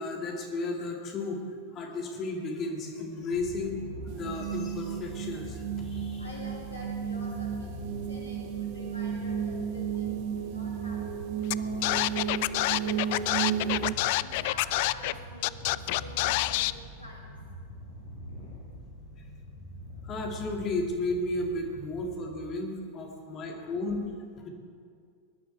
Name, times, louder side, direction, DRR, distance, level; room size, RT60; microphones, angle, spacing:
voice 1, 0.0-1.4 1.7-6.2 19.2-19.3 20.0-24.0 24.4-24.5, left 2 dB, 30° left, 1 dB, 2.4 m, -34 dB
Purr, 3.3-22.6, left 1 dB, 65° left, 5.0 m, -44 dB
sound 1, 4.1-13.9, right 8 dB, 45° right, 0.8 m, -33 dB
voice 2, 6.2-17.4, equal, 80° left, -3 dB, 2.0 m, -47 dB
Scratching (performance technique), 11.5-11.6 11.8-15.1 15.4-16.7, left 19 dB, 50° left, 0.3 m, -27 dB
21.0 x 11.5 x 4.6 m, 2.1 s
figure-of-eight pair, 90°, 0 cm